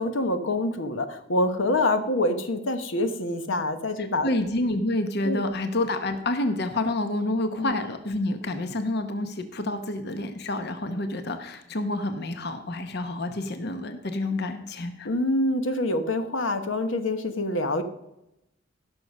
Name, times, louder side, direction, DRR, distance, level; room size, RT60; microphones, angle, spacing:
voice 1, 0.0-4.3 5.2-5.5 7.6-7.7 15.0-17.8, left 1 dB, 90° left, 8 dB, 1.2 m, -26 dB
voice 2, 4.0-15.1, left 2 dB, 60° left, 8 dB, 0.9 m, -28 dB
16.0 x 6.5 x 5.4 m, 0.86 s
head